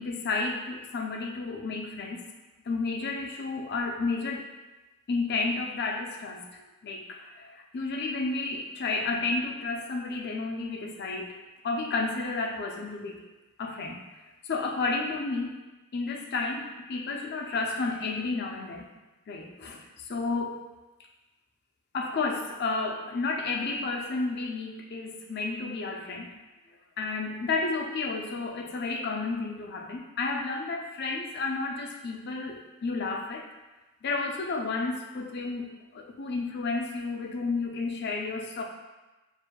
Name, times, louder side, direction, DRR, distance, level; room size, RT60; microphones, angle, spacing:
voice 1, 0.0-2.2 2.7-4.5 5.1-11.4 11.6-13.3 13.6-14.0 14.5-15.6 15.9-18.9 19.3-20.6 21.9-26.4 27.0-33.5 34.0-38.6, left 3 dB, 50° left, 2 dB, 0.5 m, -31 dB
6.5 x 2.6 x 2.2 m, 1.1 s
head